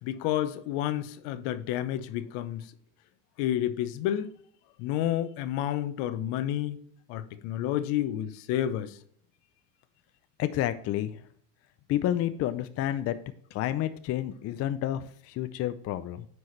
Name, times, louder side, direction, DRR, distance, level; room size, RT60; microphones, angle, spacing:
voice 1, 0.0-2.6 3.4-4.3 4.8-6.8 7.1-9.0, left 12 dB, 60° left, 0.9 m, -30 dB
voice 2, 10.4-11.2 11.9-13.2 13.5-16.3, left 12 dB, 35° left, 0.4 m, -30 dB
9.5 x 4.6 x 3.1 m
supercardioid pair, 110°, 47 cm